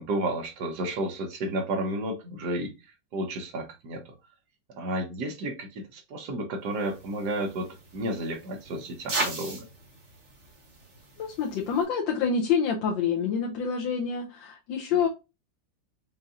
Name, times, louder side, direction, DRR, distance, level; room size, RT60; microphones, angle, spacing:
voice 1, 0.0-2.7 3.1-4.1 4.7-9.7 14.9-15.1, right 1 dB, 65° right, 1.4 m, -32 dB
sound 1, 6.7-11.8, right 2 dB, 40° right, 1.4 m, -38 dB
voice 2, 11.2-15.1, left 6 dB, 85° left, 1.4 m, -27 dB
5.2 x 2.7 x 2.4 m
omnidirectional pair, 2.0 m